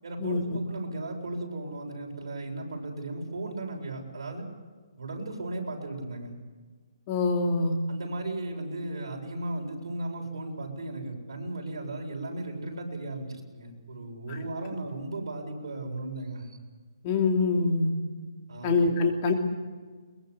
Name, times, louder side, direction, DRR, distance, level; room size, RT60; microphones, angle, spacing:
voice 1, 0.0-4.4 5.0-6.3 7.9-16.6 18.5-18.9, right 2 dB, 70° right, 0 dB, 7.6 m, -36 dB
voice 2, 7.1-7.7 17.0-17.9 18.6-19.3, left 3 dB, 25° left, 3 dB, 3.0 m, -24 dB
22.5 x 22.0 x 8.4 m, 1.4 s
hypercardioid pair, 170°, 3 cm